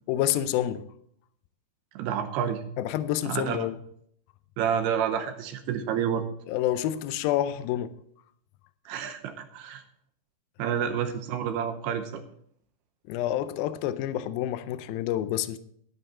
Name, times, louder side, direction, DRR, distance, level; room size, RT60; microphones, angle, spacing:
voice 1, 0.1-0.8 2.8-3.8 6.5-7.9 13.1-15.6, left 12 dB, 90° left, 2.1 m, -28 dB
voice 2, 2.0-2.6 3.2-3.7 4.6-6.2 8.9-9.8 10.6-12.2, right 8 dB, 75° right, 2.7 m, -29 dB
11.5 x 11.0 x 4.3 m
omnidirectional pair, 5.0 m